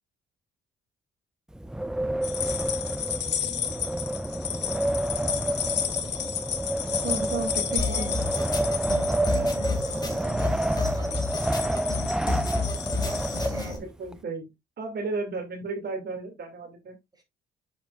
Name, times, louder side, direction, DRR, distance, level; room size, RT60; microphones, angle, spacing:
Wind, 1.5-14.1, right 1 dB, 5° right, 0.3 m, -29 dB
sound 1, 2.2-13.4, left 8 dB, 60° left, 1.4 m, -33 dB
voice 1, 3.4-3.8 5.4-6.4 7.6-8.2 9.3-11.2 11.5-12.3 13.4-13.8 17.1-17.2, right 3 dB, 20° right, 3.3 m, -46 dB
voice 2, 7.0-8.2 13.7-14.5 14.8-16.9, right 3 dB, 55° right, 2.5 m, -33 dB
sound 2, 7.8-13.8, left 3 dB, 20° left, 3.1 m, -31 dB
7.7 x 7.0 x 2.5 m
cardioid pair, 90°, 20 cm